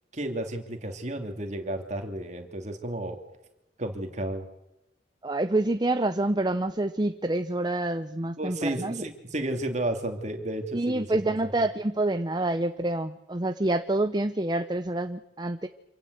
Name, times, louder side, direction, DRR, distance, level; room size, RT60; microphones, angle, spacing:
voice 1, 0.1-3.2 3.8-4.5 8.4-11.1, right 1 dB, 40° right, 5 dB, 2.8 m, -32 dB
voice 2, 5.2-9.0 10.7-15.7, right 2 dB, 25° right, 9 dB, 0.7 m, -27 dB
27.0 x 16.5 x 8.1 m, 0.93 s
head